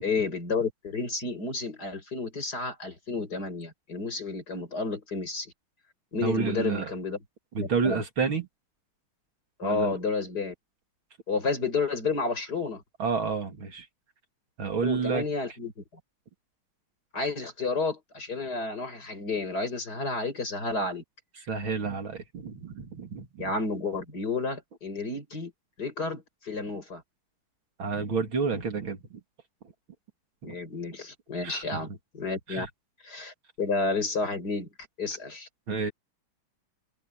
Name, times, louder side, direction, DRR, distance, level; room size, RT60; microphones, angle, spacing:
voice 1, 0.0-5.5 6.1-7.2 7.6-8.0 9.6-10.5 11.3-12.8 14.8-15.8 17.1-21.0 23.4-25.5 25.8-27.0 30.4-32.7 33.0-34.7 35.0-35.5, left 3 dB, 50° left, 5.9 m, -31 dB
voice 2, 6.2-6.9 7.5-8.5 9.6-9.9 13.0-13.9 14.6-15.2 21.5-23.5 27.8-29.2 30.4-30.6 31.4-32.0 32.5-32.7 35.7-35.9, right 5 dB, 70° right, 3.4 m, -30 dB
open air
omnidirectional pair, 2.3 m